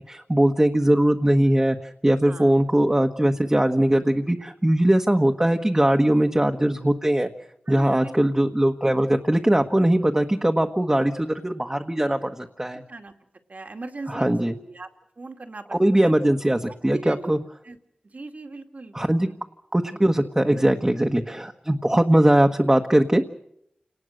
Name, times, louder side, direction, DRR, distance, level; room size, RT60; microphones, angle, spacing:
voice 1, 0.1-7.3 7.7-12.8 14.1-14.5 15.7-17.4 18.9-19.3 19.7-23.3, right 1 dB, 20° right, 4 dB, 1.4 m, -20 dB
voice 2, 7.7-8.1 12.7-13.1 13.5-14.9 15.2-16.3 16.9-17.4 17.6-17.8 18.0-19.4, right 3 dB, 60° right, 6 dB, 2.4 m, -39 dB
29.0 x 19.0 x 6.6 m, 0.77 s
wide cardioid pair, 60°, 3 cm